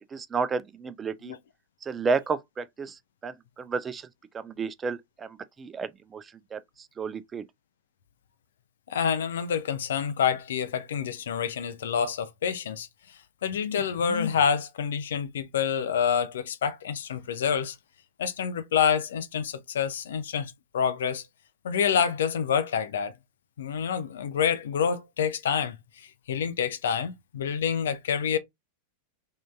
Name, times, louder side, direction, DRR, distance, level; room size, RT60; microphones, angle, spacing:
voice 1, 0.1-1.3 1.8-4.1 4.3-7.5, right 4 dB, 20° right, 0.3 m, -32 dB
voice 2, 8.9-12.9 13.4-17.8 18.2-21.2 21.6-23.1 23.6-28.4, left 7 dB, 60° left, 0.6 m, -27 dB
3.6 x 2.5 x 3.4 m
figure-of-eight pair, 90°, 0 cm